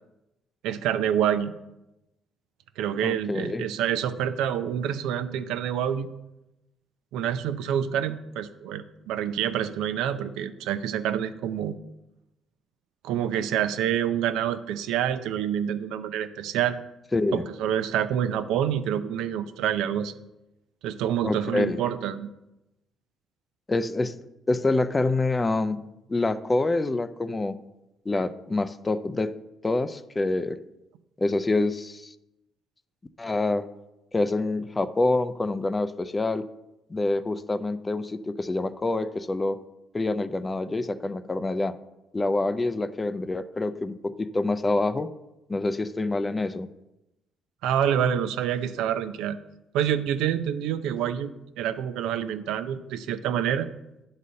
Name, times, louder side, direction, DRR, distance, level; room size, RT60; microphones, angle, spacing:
voice 1, 0.6-1.5 2.8-6.1 7.1-11.7 13.0-16.8 17.3-20.1 20.8-22.3 47.6-49.4 49.7-51.3 51.6-53.7, right 9 dB, 85° right, 11 dB, 0.5 m, -27 dB
voice 2, 3.0-3.7 17.1-17.5 21.2-21.8 23.7-24.2 24.5-25.8 26.1-27.6 28.1-29.3 29.6-30.6 31.2-32.1 33.2-33.7 34.1-36.5 36.9-39.6 39.9-41.7 42.1-45.1 45.5-46.7, left 2 dB, 20° left, 12 dB, 0.4 m, -26 dB
9.6 x 4.1 x 6.4 m, 0.93 s
cardioid pair, 105°, 0 cm